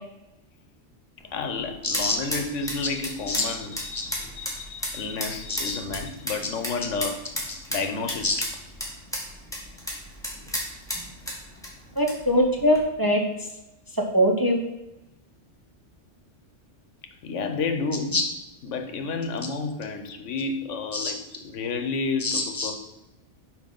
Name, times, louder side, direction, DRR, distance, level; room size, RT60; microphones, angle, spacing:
sound 1, 1.2-12.8, equal, 5° left, 1.5 m, -35 dB
voice 1, 1.3-7.2 7.7-8.3 17.2-18.2 18.6-22.7, left 4 dB, 80° left, 6 dB, 1.1 m, -31 dB
voice 2, 1.8-2.2 3.3-3.4 5.5-5.8 8.2-8.4 12.0-13.2 14.1-14.6 18.1-18.2 20.9-21.1 22.2-22.7, left 1 dB, 25° right, 1 dB, 0.5 m, -23 dB
5.6 x 4.7 x 5.4 m, 0.94 s
omnidirectional pair, 1.2 m